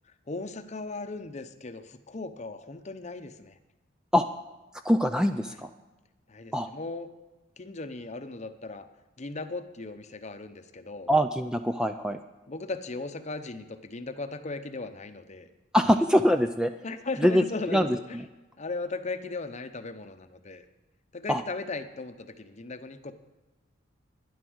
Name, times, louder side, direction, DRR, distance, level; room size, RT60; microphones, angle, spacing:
voice 1, 0.3-3.6 5.4-5.6 6.3-7.1 7.6-8.9 9.2-11.1 12.5-15.5 16.8-18.2 18.6-20.6 21.1-23.1, left 3 dB, 35° left, 9 dB, 0.7 m, -37 dB
voice 2, 4.8-5.7 6.5-6.7 11.1-12.2 15.7-16.7 17.2-17.4 17.7-17.9 21.3-21.4, equal, 5° right, 8 dB, 0.3 m, -23 dB
11.5 x 10.5 x 6.3 m, 1.1 s
head